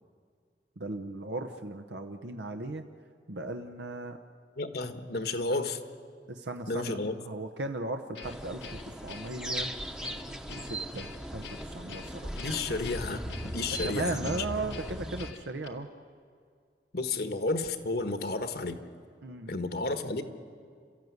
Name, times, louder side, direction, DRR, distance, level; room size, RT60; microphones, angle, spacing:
voice 1, 0.8-2.8 3.3-4.2 6.3-9.7 10.5-12.6 13.7-15.9 19.2-19.5, right 2 dB, 85° right, 5 dB, 1.0 m, -37 dB
voice 2, 4.6-5.8 6.7-7.1 12.3-14.4 16.9-18.8 19.5-20.2, left 3 dB, 60° left, 8 dB, 1.4 m, -32 dB
Guitar, 8.1-15.7, left 6 dB, 90° left, 1.9 m, -47 dB
sound 1, 8.2-15.3, right 1 dB, 5° right, 0.9 m, -38 dB
29.5 x 14.0 x 9.5 m, 2.1 s
head